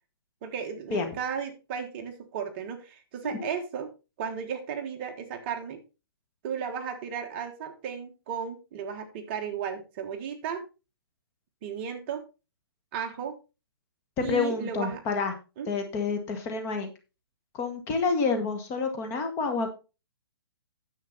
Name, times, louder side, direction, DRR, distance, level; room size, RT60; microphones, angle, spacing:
voice 1, 0.4-3.9 4.2-5.8 6.4-10.6 11.6-12.2 12.9-13.4 14.2-15.0 15.6-15.7, right 7 dB, 30° right, 5 dB, 1.4 m, -34 dB
voice 2, 14.2-15.3 15.7-16.9 17.5-19.7, left 4 dB, 20° left, 6 dB, 1.6 m, -28 dB
10.0 x 7.4 x 4.1 m, 0.29 s
hypercardioid pair, 160°, 13 cm